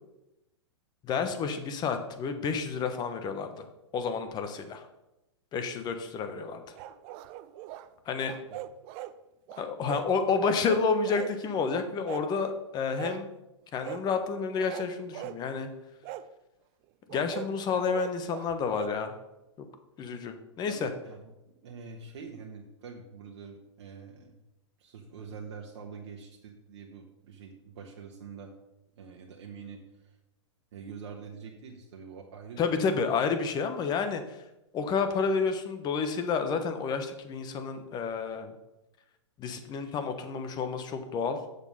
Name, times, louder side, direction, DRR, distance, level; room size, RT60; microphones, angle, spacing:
voice 1, 1.0-3.7 3.9-4.8 5.5-6.7 8.1-8.3 9.6-13.3 13.7-15.7 17.1-19.1 19.6-19.7 20.0-20.9 32.6-34.4 34.7-38.5 39.4-41.4, left 5 dB, 30° left, 8 dB, 1.1 m, -30 dB
sound 1, 6.8-7.9 8.2-9.1 9.5-10.1 10.4-11.4 11.7-12.5 13.0-13.3 13.8-14.0 14.5-15.4 16.0-16.3 17.1-18.9, right 13 dB, 40° right, 0.5 m, -41 dB
voice 2, 20.7-24.4 24.8-28.5 29.0-30.2 30.7-33.0, right 5 dB, 65° right, 1 dB, 1.2 m, -45 dB
7.0 x 6.6 x 5.5 m, 0.93 s
hypercardioid pair, 120°, 15 cm